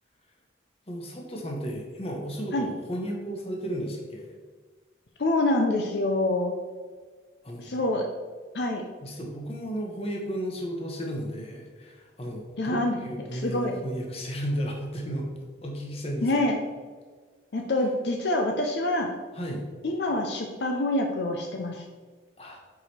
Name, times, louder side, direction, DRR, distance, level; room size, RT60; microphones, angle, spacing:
voice 1, 0.9-4.3 7.4-7.8 9.0-15.3 15.6-16.3 19.3-19.6 22.4-22.6, equal, 35° left, 0 dB, 1.0 m, -34 dB
voice 2, 5.2-6.5 7.6-8.1 8.5-8.8 12.6-13.0 13.3-13.7 16.2-16.6 17.5-19.1 19.8-21.8, left 1 dB, 65° left, 2 dB, 0.6 m, -26 dB
4.9 x 4.8 x 4.2 m, 1.5 s
head